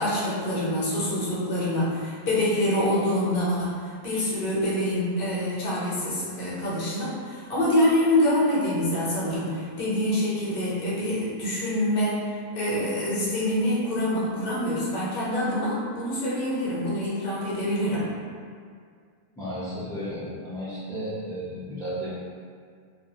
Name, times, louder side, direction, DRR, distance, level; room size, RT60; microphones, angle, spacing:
voice 1, 0.0-3.8 4.0-18.1, left 1 dB, 60° left, -7 dB, 0.9 m, -26 dB
voice 2, 19.4-22.1, equal, 5° left, -11 dB, 0.6 m, -33 dB
2.4 x 2.0 x 2.8 m, 2.1 s
omnidirectional pair, 1.1 m